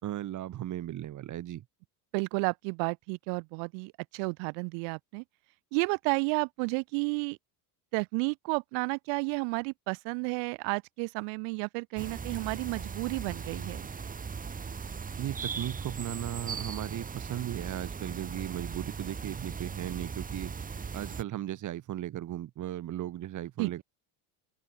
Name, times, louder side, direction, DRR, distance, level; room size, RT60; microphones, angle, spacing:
voice 1, 0.0-1.6 15.2-20.5 20.9-23.8, right 13 dB, 40° right, 5.1 m, -36 dB
voice 2, 2.1-5.2 5.7-7.4 7.9-13.9 23.6-23.8, right 37 dB, 85° right, 4.3 m, -32 dB
sound 1, 12.0-21.2, right 5 dB, 20° right, 3.0 m, -38 dB
open air
cardioid pair, 160°, 44 cm